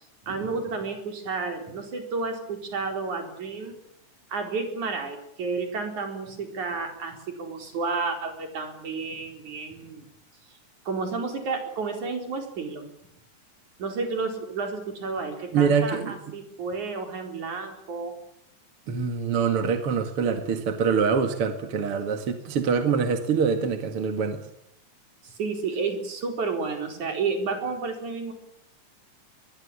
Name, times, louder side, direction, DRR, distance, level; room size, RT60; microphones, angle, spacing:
voice 1, 0.3-3.7 4.3-10.1 10.9-12.9 13.8-18.2 25.2-28.3, right 4 dB, 75° right, 5 dB, 5.8 m, -31 dB
voice 2, 15.5-16.2 18.9-24.4, right 6 dB, 50° right, 8 dB, 2.7 m, -24 dB
22.5 x 21.5 x 8.7 m, 0.76 s
omnidirectional pair, 3.4 m